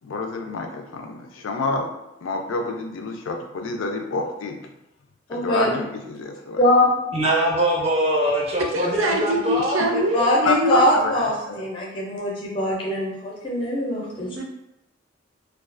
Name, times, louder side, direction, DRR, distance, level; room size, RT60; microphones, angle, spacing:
voice 1, 0.0-1.9 2.2-4.6 5.3-6.6 10.4-11.6, left 3 dB, 90° left, 3 dB, 0.4 m, -28 dB
voice 2, 5.3-5.7 6.6-7.4 10.1-14.4, left 1 dB, 25° left, -3 dB, 0.4 m, -22 dB
voice 3, 7.1-9.8, right 1 dB, 30° right, -3 dB, 0.5 m, -22 dB
voice 4, 8.7-10.9 14.1-14.4, right 1 dB, 90° right, 1 dB, 0.5 m, -24 dB
2.3 x 2.3 x 2.4 m, 0.87 s
head